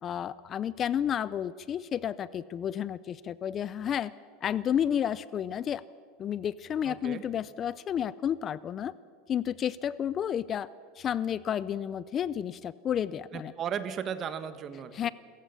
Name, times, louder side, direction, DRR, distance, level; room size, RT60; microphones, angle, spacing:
voice 1, 0.0-4.1 4.4-5.8 6.2-8.9 9.3-10.7 11.0-13.5 14.9-15.1, left 9 dB, 30° left, 18 dB, 0.4 m, -31 dB
voice 2, 6.8-7.2 13.3-15.1, right 8 dB, 35° right, 11 dB, 1.4 m, -36 dB
27.5 x 15.0 x 7.0 m, 2.1 s
supercardioid pair, 140°, 0 cm